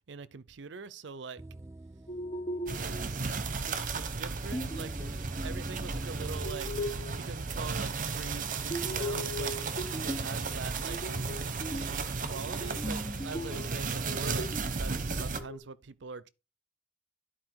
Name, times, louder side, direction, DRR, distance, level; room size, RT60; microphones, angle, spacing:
voice 1, 0.1-1.4 2.7-3.3 3.6-5.1 5.4-6.7 7.2-9.5 10.0-11.1 11.7-14.5 14.8-16.3, right 5 dB, 70° right, 0.6 m, -44 dB
sound 1, 1.4-6.5, right 1 dB, 15° right, 0.5 m, -45 dB
sound 2, 2.1-3.1 4.5-5.6 6.2-7.2 8.7-10.3 10.8-12.0 12.3-13.8 14.1-15.6, left 1 dB, 25° left, 1.0 m, -38 dB
sound 3, 2.7-15.4, right 4 dB, 45° right, 0.9 m, -34 dB
11.0 x 4.2 x 4.6 m
head